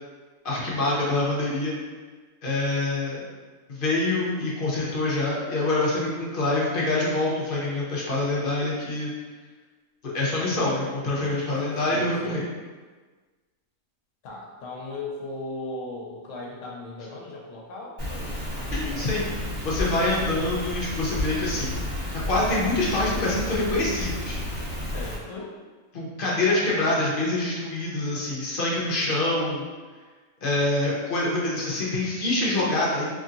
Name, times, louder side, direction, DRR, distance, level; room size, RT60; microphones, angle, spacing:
voice 1, 0.4-1.7 2.4-3.2 3.7-9.1 10.0-12.4 18.7-19.3 19.6-21.8 22.3-24.4 25.9-29.7 30.4-33.2, left 2 dB, 50° left, -5 dB, 0.8 m, -25 dB
voice 2, 11.2-12.5 14.2-19.3 24.9-25.5 28.8-29.3, left 2 dB, 75° left, -2 dB, 1.0 m, -38 dB
Rain, 18.0-25.2, left 1 dB, 40° right, 1.4 m, -31 dB
3.0 x 2.7 x 2.5 m, 1.4 s
omnidirectional pair, 1.4 m